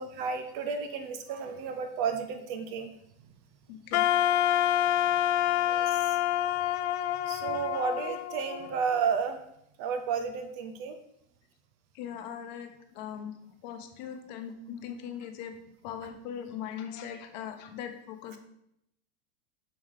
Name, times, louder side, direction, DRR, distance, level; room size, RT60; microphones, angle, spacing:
voice 1, 0.0-2.9 5.7-6.2 6.6-6.8 7.3-9.4 9.8-11.0, right 6 dB, 30° right, 7 dB, 0.5 m, -32 dB
voice 2, 3.7-4.1 4.9-5.1 5.6-5.7 7.7-7.9 11.9-13.3 13.6-15.5 15.8-18.4, left 8 dB, 45° left, 6 dB, 0.9 m, -40 dB
Wind instrument woodwind instrument, 3.9-9.0, left 12 dB, 80° left, 0.5 m, -27 dB
6.2 x 5.8 x 4.9 m, 0.76 s
supercardioid pair, 170°, 32 cm